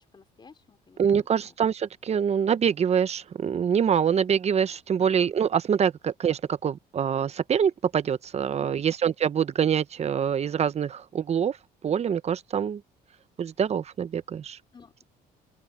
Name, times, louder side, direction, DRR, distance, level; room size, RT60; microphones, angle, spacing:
voice 1, 0.0-1.5 5.0-5.1 8.5-8.9 14.7-15.0, left 5 dB, 25° left, 3.6 m, -55 dB
voice 2, 1.0-11.6 11.8-12.8 13.4-14.6, right 8 dB, 40° right, 0.9 m, -25 dB
open air
cardioid pair, 110°, 17 cm